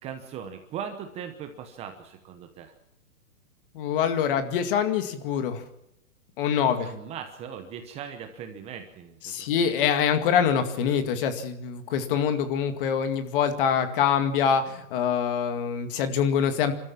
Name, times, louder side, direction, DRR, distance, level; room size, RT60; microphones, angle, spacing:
voice 1, 0.0-2.7 6.8-9.7, right 8 dB, 15° right, 6 dB, 0.9 m, -39 dB
voice 2, 3.7-5.6 6.4-6.9 9.2-16.7, left 7 dB, 35° left, 8 dB, 2.2 m, -25 dB
28.0 x 13.5 x 7.3 m, 0.82 s
hypercardioid pair, 150°, 44 cm